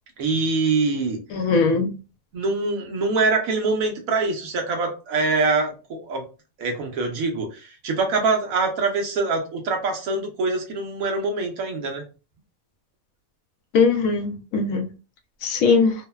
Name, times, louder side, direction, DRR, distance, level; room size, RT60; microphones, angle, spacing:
voice 1, 0.2-1.5 2.3-6.3 6.6-12.0, right 3 dB, 75° right, 1.2 m, -24 dB
voice 2, 1.3-1.9 13.7-14.9 15.4-15.9, left 4 dB, 75° left, 1.0 m, -20 dB
3.0 x 2.0 x 2.2 m
omnidirectional pair, 1.5 m